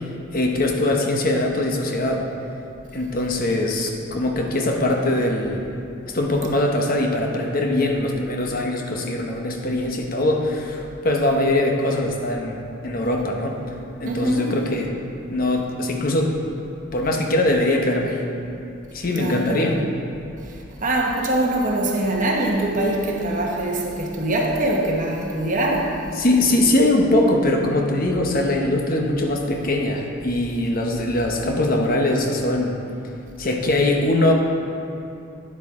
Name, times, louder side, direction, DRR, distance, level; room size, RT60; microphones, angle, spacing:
voice 1, 0.3-2.2 2.9-5.6 6.1-13.6 14.0-14.9 15.3-16.4 16.9-18.3 18.9-19.8 26.1-32.8 33.4-34.3, left 1 dB, 40° left, 1 dB, 0.9 m, -22 dB
voice 2, 14.0-14.5 19.1-19.6 20.8-26.0, right 1 dB, 40° right, -1 dB, 1.0 m, -23 dB
9.8 x 8.0 x 3.6 m, 2.8 s
head